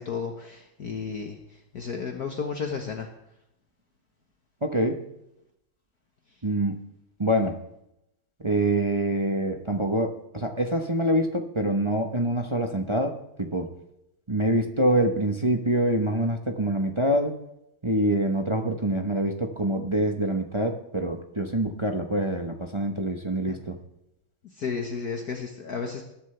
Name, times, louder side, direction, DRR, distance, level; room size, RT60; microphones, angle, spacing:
voice 1, 0.0-1.4 1.7-3.1 23.5-23.6 24.6-26.0, left 5 dB, 50° left, 2 dB, 1.7 m, -32 dB
voice 2, 4.6-5.0 6.4-6.8 7.2-7.6 8.4-13.7 14.3-17.3 17.8-23.8, right 1 dB, 25° right, 4 dB, 0.6 m, -25 dB
20.5 x 12.0 x 3.3 m, 0.82 s
omnidirectional pair, 2.2 m